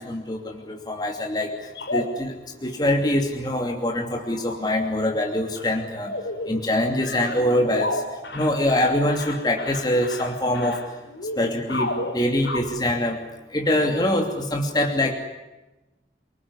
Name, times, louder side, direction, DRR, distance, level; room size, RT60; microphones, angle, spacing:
voice 1, 0.0-1.5 1.9-2.3 2.6-6.1 6.5-8.0 8.3-10.8 11.4-13.2 13.5-15.1, left 1 dB, 25° left, 2 dB, 2.9 m, -24 dB
sound 1, 1.5-2.4 3.3-3.5 4.0-4.6 5.1-5.2 5.6-5.7 6.0-6.7 7.0-12.6, left 2 dB, 85° left, 5.2 m, -32 dB
30.0 x 20.0 x 9.9 m, 1.0 s
head